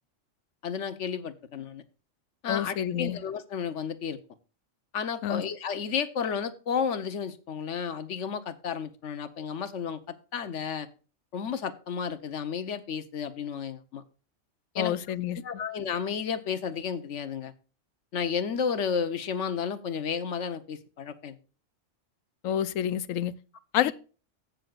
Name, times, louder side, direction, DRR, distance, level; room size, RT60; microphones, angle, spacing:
voice 1, 0.6-1.8 2.4-4.2 4.9-10.9 11.3-14.0 14.7-15.0 15.3-17.5 18.1-21.4 23.8-23.9, left 6 dB, 70° left, 1.2 m, -32 dB
voice 2, 2.5-3.2 5.2-5.4 14.8-15.4 22.4-23.3 23.7-23.9, left 10 dB, 90° left, 1.0 m, -28 dB
15.5 x 6.6 x 2.4 m
omnidirectional pair, 1.3 m